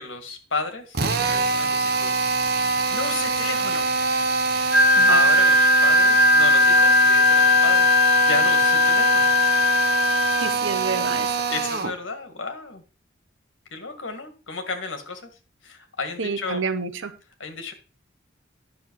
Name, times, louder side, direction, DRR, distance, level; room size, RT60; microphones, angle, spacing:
voice 1, 0.0-2.3 2.9-3.9 5.1-9.7 10.4-10.6 11.5-12.8 13.7-15.3 15.6-16.6 17.4-17.7, left 3 dB, 80° left, 7 dB, 1.8 m, -32 dB
Drill, 0.9-12.0, right 3 dB, 55° right, 0.9 m, -24 dB
Wind instrument woodwind instrument, 4.7-10.5, left 3 dB, ahead, 1.2 m, -18 dB
voice 2, 10.4-11.3 16.2-17.1, right 4 dB, 80° right, 11 dB, 0.9 m, -28 dB
10.5 x 6.4 x 4.6 m, 0.34 s
head